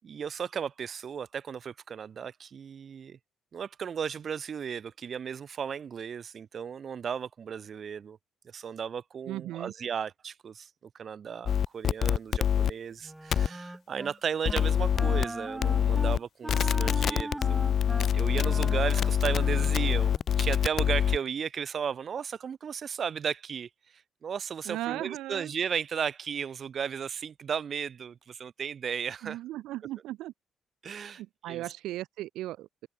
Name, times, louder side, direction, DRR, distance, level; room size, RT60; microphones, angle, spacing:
voice 1, 0.0-3.2 3.5-8.2 8.5-17.6 18.1-29.4 30.8-31.6, right 7 dB, 50° right, 5.4 m, -35 dB
voice 2, 9.3-9.7 24.6-25.5 29.2-30.3 31.2-32.9, right 15 dB, 90° right, 3.1 m, -37 dB
sound 1, 11.5-12.7 13.3-13.5 14.4-15.2 15.6-16.2 16.5-21.2, left 8 dB, 60° left, 1.4 m, -25 dB
Wind instrument woodwind instrument, 13.0-14.2 14.5-14.7 14.9-20.2, right 1 dB, 10° right, 4.4 m, -40 dB
cardioid pair, 90°, 0 cm